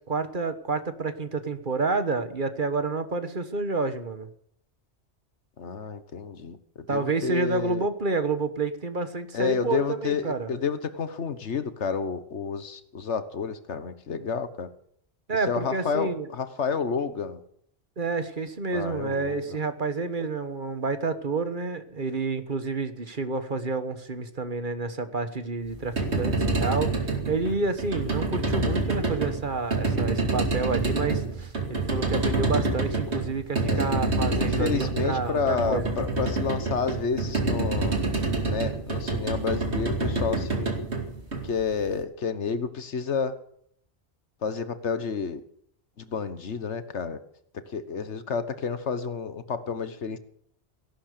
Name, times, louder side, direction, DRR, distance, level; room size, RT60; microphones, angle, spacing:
voice 1, 0.0-4.3 6.9-10.5 15.3-16.3 18.0-35.9, right 3 dB, 45° right, 10 dB, 1.5 m, -29 dB
voice 2, 5.6-7.9 9.3-14.7 15.5-17.4 18.7-19.6 33.6-34.0 34.4-38.0 38.5-40.7 41.4-43.4 44.4-45.4 46.0-47.2 47.7-50.2, left 5 dB, 80° left, 11 dB, 1.5 m, -30 dB
sound 1, 25.7-41.9, right 3 dB, 75° right, 2.7 m, -27 dB
17.0 x 11.5 x 6.8 m, 0.68 s
omnidirectional pair, 1.2 m